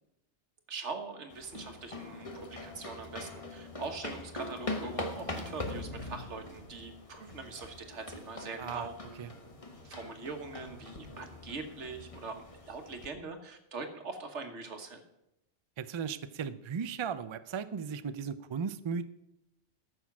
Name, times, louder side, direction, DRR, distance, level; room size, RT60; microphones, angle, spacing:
voice 1, 0.7-8.9 9.8-15.0, right 4 dB, 85° right, 6 dB, 1.6 m, -42 dB
sound 1, 1.3-13.1, left 2 dB, 30° left, 1.3 m, -42 dB
voice 2, 15.8-19.1, right 6 dB, 50° right, 13 dB, 0.3 m, -36 dB
13.5 x 6.3 x 6.0 m, 0.88 s
omnidirectional pair, 1.2 m